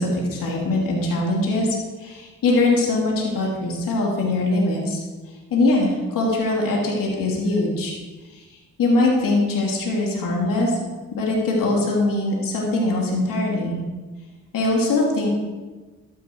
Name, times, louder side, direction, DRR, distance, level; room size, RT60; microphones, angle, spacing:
voice 1, 0.0-1.7 2.0-5.0 5.5-7.9 8.8-10.7 11.1-13.7 14.5-15.3, left 2 dB, 80° left, -2 dB, 2.9 m, -22 dB
12.5 x 10.5 x 4.6 m, 1.3 s
supercardioid pair, 50°, 33 cm